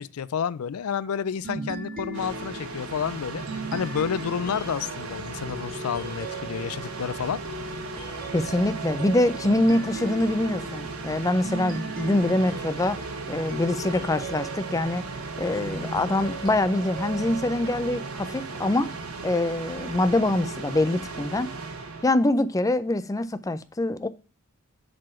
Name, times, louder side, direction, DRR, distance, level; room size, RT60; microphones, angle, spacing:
voice 1, 0.0-7.4, left 7 dB, 85° left, 0.4 m, -30 dB
sound 1, 1.4-18.6, right 2 dB, 40° right, 2.2 m, -39 dB
sound 2, 2.1-22.0, right 3 dB, 90° right, 1.3 m, -36 dB
voice 2, 8.3-13.0 13.3-15.1 15.4-18.9 19.2-21.5 22.0-24.1, left 1 dB, 15° left, 0.4 m, -24 dB
7.5 x 4.2 x 4.3 m
head